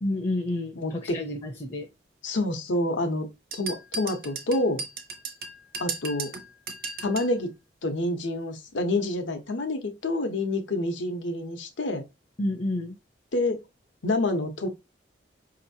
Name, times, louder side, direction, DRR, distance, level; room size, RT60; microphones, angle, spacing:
voice 1, 0.0-1.9 12.4-12.9, left 1 dB, 30° left, 0.5 m, -30 dB
voice 2, 0.8-1.2 2.2-4.8 5.8-6.3 7.0-7.5 7.8-12.0 13.3-13.6 14.0-14.7, left 2 dB, 85° left, 0.9 m, -28 dB
sound 1, 3.5-7.4, right 4 dB, 50° right, 0.6 m, -36 dB
5.1 x 2.9 x 2.7 m
head